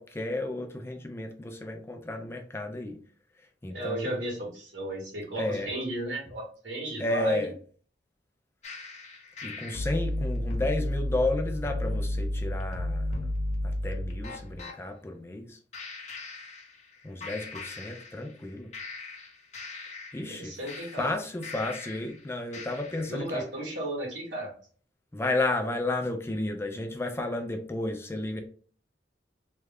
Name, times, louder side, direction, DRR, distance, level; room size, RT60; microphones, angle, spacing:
voice 1, 0.0-3.0 3.4-4.2 5.4-5.7 7.0-7.5 9.4-13.2 13.6-15.6 17.0-18.7 20.1-20.5 20.9-23.5 25.1-28.4, left 2 dB, 15° left, 5 dB, 0.3 m, -32 dB
voice 2, 3.7-7.5 20.3-21.1 23.1-24.5, right 1 dB, 80° right, -3 dB, 1.7 m, -34 dB
sound 1, 8.6-14.8 15.7-17.0 17.2-18.4 18.7-22.2 22.5-23.2, left 1 dB, 40° left, 0.7 m, -34 dB
3.1 x 2.3 x 3.5 m, 0.43 s
head